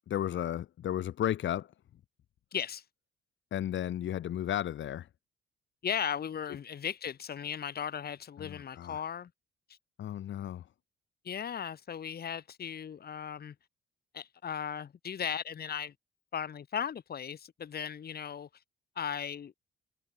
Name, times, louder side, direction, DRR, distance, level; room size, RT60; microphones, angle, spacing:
voice 1, 0.1-1.7 3.5-5.1 8.4-9.0 10.0-10.7, left 11 dB, 70° left, 2.9 m, -34 dB
voice 2, 2.5-2.8 5.8-9.3 11.2-13.5 14.1-15.9 16.3-18.5 19.0-19.5, left 8 dB, 50° left, 2.9 m, -37 dB
cardioid pair, 90°, 20 cm